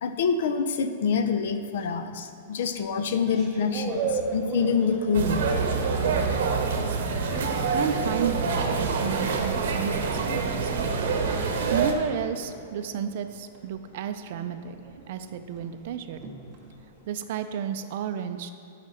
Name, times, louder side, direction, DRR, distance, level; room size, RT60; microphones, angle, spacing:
voice 1, 0.0-5.9 7.2-7.5, left 5 dB, 65° left, 9 dB, 0.5 m, -27 dB
sound 1, 2.6-7.8 8.1-17.0, right 4 dB, 15° right, 0.9 m, -38 dB
sound 2, 5.1-11.9, right 4 dB, 65° right, 0.8 m, -26 dB
voice 2, 7.7-16.2 17.1-18.5, right 8 dB, 50° right, 9 dB, 0.4 m, -32 dB
6.3 x 5.0 x 5.6 m, 2.5 s
supercardioid pair, 165°, 0 cm